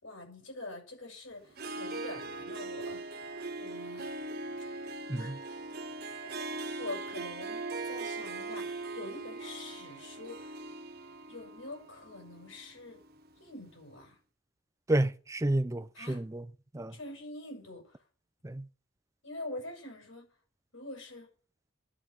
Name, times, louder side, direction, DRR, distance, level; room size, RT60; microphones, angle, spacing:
voice 1, 0.0-4.2 5.1-5.3 6.2-10.6 11.3-13.0 13.4-14.2 15.9-16.2 16.9-18.0 19.2-20.3 20.7-21.3, left 2 dB, 80° left, 6.0 m, -45 dB
Harp, 1.5-13.4, right 3 dB, 50° right, 1.2 m, -40 dB
voice 2, 14.9-16.4 16.7-16.9 18.4-18.6, right 1 dB, 15° right, 0.5 m, -30 dB
11.0 x 5.9 x 8.5 m
head